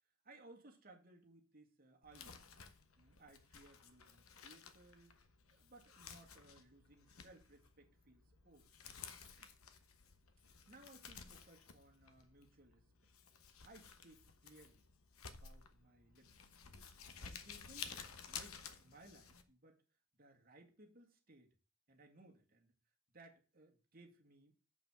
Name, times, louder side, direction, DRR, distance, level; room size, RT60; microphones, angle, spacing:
voice 1, 0.2-2.4 3.0-5.2 5.5-8.7 9.4-9.5 10.7-13.1 13.6-14.8 15.2-16.4 17.2-18.0 18.3-19.8 20.2-21.6 21.9-22.7 23.1-24.5, right 2 dB, 40° right, 1.9 m, -63 dB
Crumpling crinkling, 2.0-19.4, left 6 dB, 80° left, 1.2 m, -54 dB
7.3 x 5.7 x 7.0 m
head